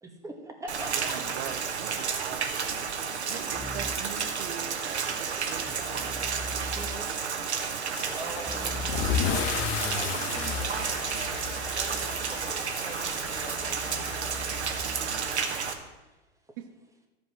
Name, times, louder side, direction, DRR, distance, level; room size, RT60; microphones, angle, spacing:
voice 1, 0.0-1.3 2.0-2.1 6.6-7.2 8.0-8.7 9.8-10.7 11.7-13.9 14.7-15.5, right 1 dB, 10° right, 2 dB, 1.8 m, -43 dB
Rain, 0.7-15.7, right 6 dB, 85° right, 1.3 m, -32 dB
voice 2, 0.9-2.9 16.6-16.7, right 10 dB, 55° right, 7 dB, 1.3 m, -41 dB
voice 3, 3.3-6.0 8.5-11.6, right 7 dB, 70° right, 6 dB, 1.5 m, -43 dB
Keyboard (musical), 3.5-4.2 5.6-7.2 8.4-15.5, left 1 dB, 5° left, 0.5 m, -42 dB
Car / Engine starting / Accelerating revving vroom, 7.9-15.3, left 8 dB, 45° left, 1.2 m, -34 dB
13.5 x 5.4 x 6.3 m, 1.1 s
hypercardioid pair, 100°, 32 cm